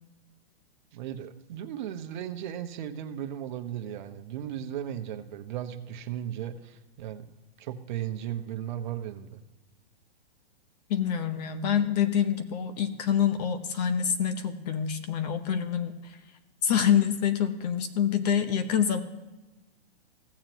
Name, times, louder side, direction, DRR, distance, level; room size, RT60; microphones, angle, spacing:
voice 1, 0.9-7.3 7.6-9.4, right 10 dB, 50° right, 6 dB, 1.0 m, -36 dB
voice 2, 10.9-16.2 16.6-19.0, left 8 dB, 40° left, 10 dB, 0.9 m, -26 dB
16.0 x 7.4 x 3.0 m, 1.1 s
hypercardioid pair, 150°, 31 cm